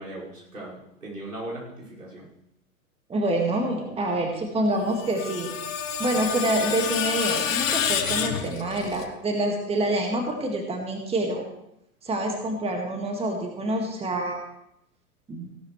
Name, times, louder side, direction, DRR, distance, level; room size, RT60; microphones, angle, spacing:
voice 1, 0.0-2.3, right 1 dB, 85° right, -6 dB, 5.7 m, -38 dB
voice 2, 3.1-5.5 6.0-11.4 12.0-14.4 15.3-15.5, right 1 dB, 15° right, 2 dB, 2.0 m, -27 dB
Screech, 4.8-9.1, left 8 dB, 60° left, 1.6 m, -28 dB
17.0 x 12.0 x 3.3 m, 0.80 s
figure-of-eight pair, 105°, 44 cm